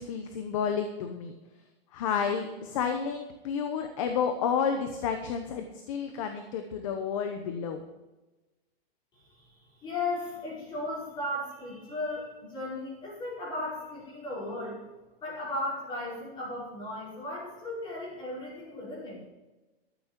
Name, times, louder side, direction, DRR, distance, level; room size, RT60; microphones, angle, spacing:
voice 1, 0.0-1.3 1.9-7.8, left 7 dB, 35° left, 6 dB, 1.0 m, -31 dB
voice 2, 9.1-14.8 15.2-19.2, left 2 dB, 15° left, -6 dB, 5.5 m, -36 dB
13.0 x 8.4 x 6.0 m, 1.1 s
supercardioid pair, 180°, 31 cm